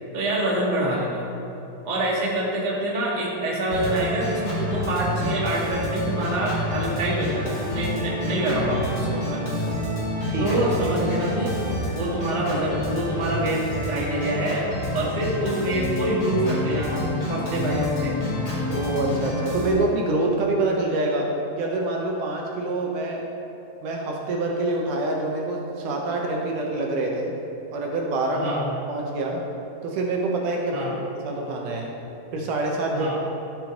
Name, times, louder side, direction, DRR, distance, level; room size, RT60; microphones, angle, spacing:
voice 1, 0.1-1.3 1.8-9.4 10.4-11.5 11.9-14.7 14.9-18.1 28.3-28.7 30.7-31.0 32.9-33.2, right 1 dB, 20° right, -5 dB, 1.2 m, -26 dB
Organ, 3.7-19.7, left 1 dB, 30° left, 2.4 m, -28 dB
voice 2, 18.7-23.2 23.8-27.3 27.7-28.5 28.9-29.4 29.8-30.9 31.2-32.0 32.3-33.1, right 2 dB, 70° right, 0 dB, 2.3 m, -26 dB
14.5 x 7.0 x 3.8 m, 2.9 s
omnidirectional pair, 4.1 m